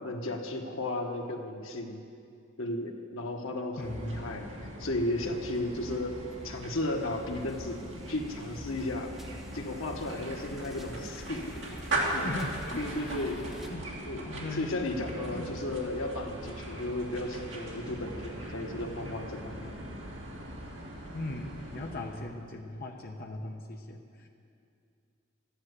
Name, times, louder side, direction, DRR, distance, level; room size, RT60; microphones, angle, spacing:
voice 1, 0.0-2.0 2.6-4.5 4.8-9.1 9.5-11.6 12.1-12.3 12.8-13.5 14.1-19.7, left 1 dB, 80° left, 3 dB, 1.4 m, -34 dB
voice 2, 3.8-4.3 12.2-13.9 14.2-14.7 15.2-15.5 21.1-24.3, left 2 dB, 45° left, 1 dB, 0.8 m, -39 dB
sound 1, 3.8-22.4, right 1 dB, 60° right, 2.7 m, -40 dB
sound 2, 5.5-5.6 5.9-13.7, equal, ahead, 1.2 m, -51 dB
13.5 x 10.5 x 8.2 m, 2.5 s
head